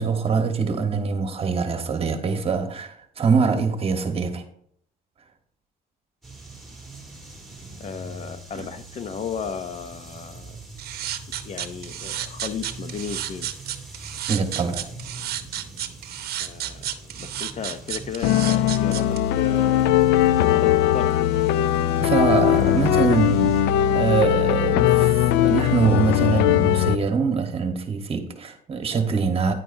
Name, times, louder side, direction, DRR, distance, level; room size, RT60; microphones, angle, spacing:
voice 1, 0.0-4.4 8.5-8.7 14.3-14.8 22.0-29.5, right 5 dB, 35° right, 1.3 m, -24 dB
sound 1, 6.2-23.6, right 2 dB, ahead, 2.8 m, -43 dB
voice 2, 7.8-10.5 11.3-13.5 16.4-21.2, left 7 dB, 40° left, 0.6 m, -35 dB
sound 2, 10.8-19.2, right 12 dB, 65° right, 0.8 m, -31 dB
sound 3, 18.2-27.0, left 12 dB, 90° left, 0.4 m, -20 dB
10.0 x 9.2 x 2.7 m
cardioid pair, 110°, 17 cm